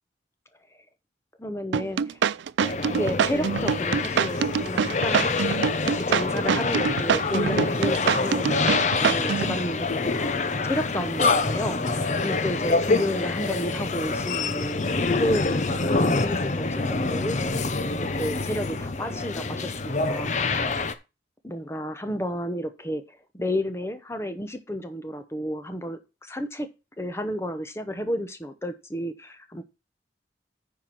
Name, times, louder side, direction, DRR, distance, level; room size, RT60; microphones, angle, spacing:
voice 1, 1.4-2.2 3.0-5.4 5.8-10.4 10.6-14.8 15.1-17.4 18.0-20.7 21.4-26.7 27.0-29.6, equal, 15° left, 9 dB, 0.9 m, -32 dB
sound 1, 1.7-9.5, right 7 dB, 80° right, 0.4 m, -25 dB
sound 2, 2.6-20.9, left 3 dB, 40° left, 0.7 m, -26 dB
9.5 x 4.7 x 5.9 m, 0.28 s
head